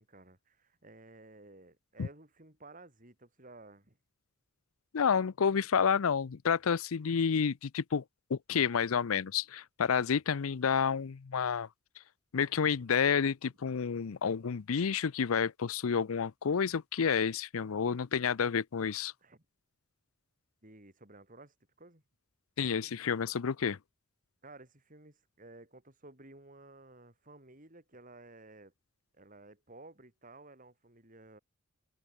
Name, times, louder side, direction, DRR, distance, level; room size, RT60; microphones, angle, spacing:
voice 1, 0.0-4.0 19.2-19.4 20.6-22.0 24.4-28.7 29.1-31.4, right 2 dB, 40° right, 5.0 m, -54 dB
voice 2, 4.9-8.0 8.3-11.7 12.3-19.1 22.6-23.8, left 6 dB, 85° left, 0.5 m, -30 dB
head